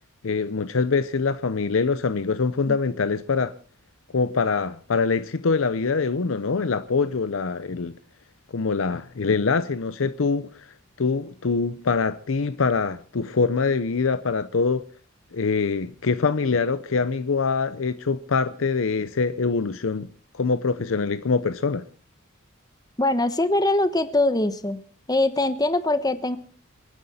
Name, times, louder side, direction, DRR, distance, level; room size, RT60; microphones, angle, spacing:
voice 1, 0.2-3.5 4.1-7.9 8.5-14.8 15.3-20.1 20.3-21.8, left 4 dB, 70° left, 0.6 m, -24 dB
voice 2, 23.0-24.8 25.1-26.4, left 2 dB, 20° left, 1.1 m, -22 dB
28.0 x 9.7 x 4.2 m
head